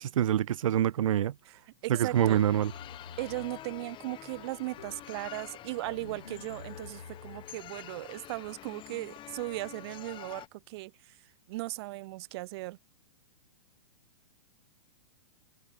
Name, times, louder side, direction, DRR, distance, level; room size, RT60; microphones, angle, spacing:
voice 1, 0.0-1.3 1.9-2.7, right 11 dB, 70° right, 0.5 m, -26 dB
voice 2, 1.8-2.4 3.2-11.2 11.5-12.8, right 20 dB, 50° right, 2.1 m, -37 dB
sound 1, 1.9-3.7 4.8-5.2 5.9-7.6, left 5 dB, 85° left, 2.7 m, -48 dB
sound 2, 2.1-10.5, left 13 dB, 30° left, 3.5 m, -47 dB
hypercardioid pair, 115°, 18 cm